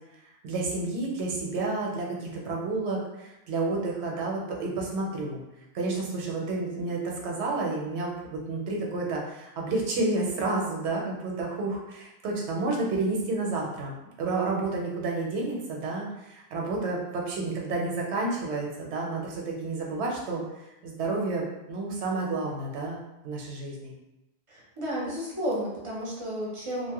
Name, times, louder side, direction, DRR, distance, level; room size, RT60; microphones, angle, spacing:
voice 1, 0.4-5.4 5.7-13.9 14.2-20.4 20.8-23.9, right 3 dB, 85° right, -1 dB, 0.9 m, -30 dB
voice 2, 24.5-26.9, equal, 35° right, -5 dB, 0.7 m, -32 dB
2.8 x 2.1 x 2.9 m, 0.92 s
omnidirectional pair, 1.1 m